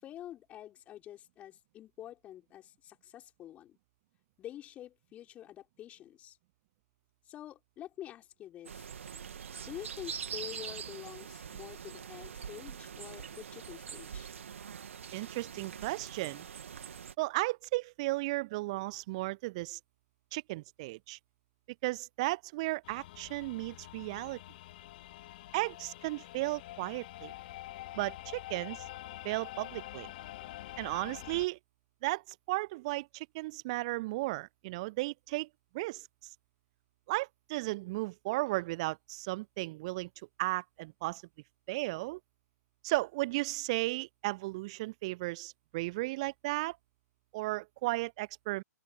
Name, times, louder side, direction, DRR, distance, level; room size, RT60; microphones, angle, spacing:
voice 1, 0.0-3.8 4.4-6.4 7.3-8.9 9.6-14.3, left 12 dB, 15° left, 6.0 m, -47 dB
sound 1, 8.7-17.1, right 7 dB, 50° right, 2.8 m, -44 dB
voice 2, 15.1-16.5 17.2-19.8 20.3-21.2 21.8-24.4 25.5-27.3 27.9-28.8 29.2-30.1 30.8-31.6 32.0-35.5 35.7-36.1 37.1-40.1 40.4-41.2 41.7-42.2 42.8-46.8 47.3-48.6, right 21 dB, 20° right, 0.3 m, -35 dB
sound 2, 22.8-31.5, left 16 dB, 35° left, 3.1 m, -47 dB
open air
figure-of-eight pair, 130°, 9 cm